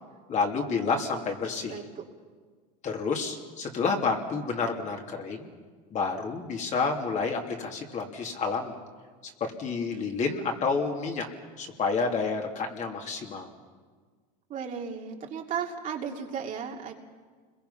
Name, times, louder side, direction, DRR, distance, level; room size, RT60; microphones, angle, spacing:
voice 1, 0.3-1.7 2.8-5.5 5.9-8.8 9.4-11.3 11.6-13.5, left 4 dB, 35° left, 2 dB, 2.8 m, -29 dB
voice 2, 1.5-2.0 14.5-16.9, right 7 dB, 40° right, 1 dB, 2.6 m, -35 dB
29.0 x 22.0 x 5.7 m, 1.5 s
supercardioid pair, 130°, 21 cm